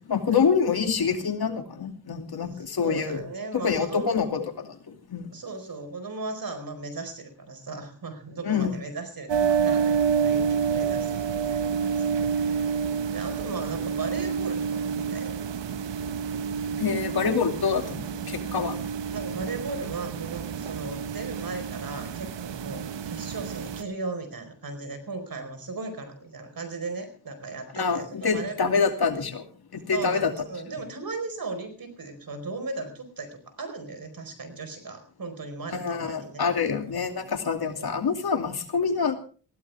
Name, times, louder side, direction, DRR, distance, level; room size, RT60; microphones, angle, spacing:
voice 1, 0.1-3.3 3.5-5.3 8.4-8.7 16.8-18.8 27.7-29.4 29.7-30.3 35.7-39.1, left 6 dB, 60° left, 5 dB, 2.7 m, -26 dB
voice 2, 2.8-4.1 5.3-12.6 13.1-15.3 19.1-28.6 29.9-36.4 37.8-37.9, right 3 dB, 55° right, 9 dB, 4.7 m, -37 dB
sound 1, 9.3-23.8, right 7 dB, 90° right, 1.2 m, -28 dB
20.0 x 16.0 x 3.5 m, 0.40 s
cardioid pair, 85°, 42 cm